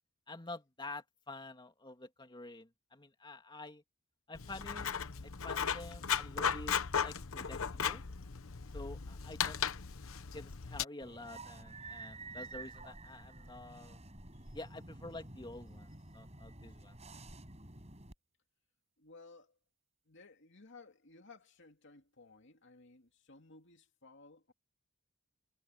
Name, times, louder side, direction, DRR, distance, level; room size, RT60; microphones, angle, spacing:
voice 1, 0.3-3.8 4.3-4.9 5.2-8.0 8.7-9.8 10.3-14.0 14.5-16.9, left 2 dB, 20° left, 2.6 m, -49 dB
Writing, 4.3-10.8, left 7 dB, 80° left, 1.0 m, -36 dB
sound 1, 11.0-18.2, right 3 dB, 30° right, 6.3 m, -50 dB
voice 2, 19.0-19.6 20.1-24.5, left 3 dB, 60° left, 2.7 m, -58 dB
head